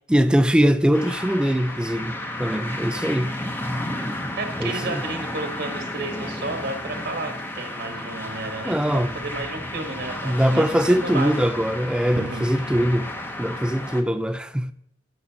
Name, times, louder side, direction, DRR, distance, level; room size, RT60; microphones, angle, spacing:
voice 1, 0.1-3.4 4.6-5.0 8.6-9.1 10.2-13.1 13.4-14.7, equal, 5° right, 0.3 m, -22 dB
sound 1, 0.9-14.0, left 1 dB, 10° left, 0.7 m, -32 dB
voice 2, 4.4-11.4 12.1-12.5, right 2 dB, 60° right, 1.2 m, -32 dB
12.5 x 6.3 x 2.8 m
head